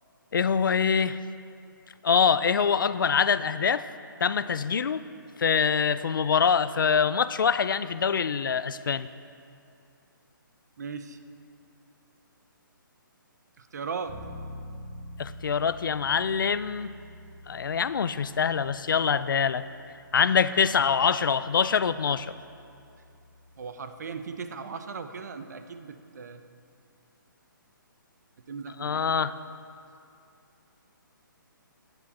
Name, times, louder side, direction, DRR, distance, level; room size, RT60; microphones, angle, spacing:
voice 1, 0.3-1.2 2.0-3.8 4.2-5.0 5.4-9.1 15.2-16.9 17.5-19.6 20.1-22.3 28.8-29.3, left 6 dB, 70° left, 15 dB, 0.5 m, -24 dB
voice 2, 10.8-11.2 13.6-14.2 23.6-26.4 28.5-29.0, right 5 dB, 50° right, 9 dB, 0.8 m, -37 dB
Bass guitar, 14.1-23.8, left 1 dB, 35° right, 2.0 m, -47 dB
16.0 x 10.0 x 4.2 m, 2.6 s
hypercardioid pair, 170°, 11 cm